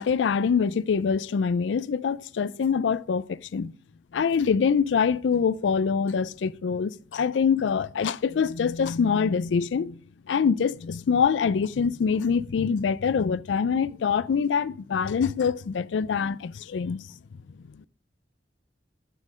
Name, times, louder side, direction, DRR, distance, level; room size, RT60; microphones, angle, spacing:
voice 1, 0.0-3.7 4.1-10.0 10.3-17.0, left 6 dB, 90° left, 0.4 m, -24 dB
9.8 x 7.6 x 5.0 m
head